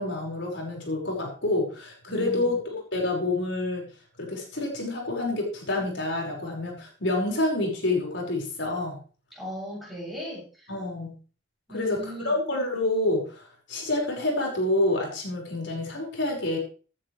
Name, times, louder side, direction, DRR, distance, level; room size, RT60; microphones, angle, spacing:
voice 1, 0.0-3.9 4.2-9.0 10.7-11.2 11.7-16.6, left 2 dB, 75° left, -1 dB, 5.3 m, -28 dB
voice 2, 2.1-2.5 9.3-10.4 11.7-12.3, equal, ahead, -6 dB, 7.4 m, -37 dB
17.0 x 10.0 x 3.3 m, 0.37 s
head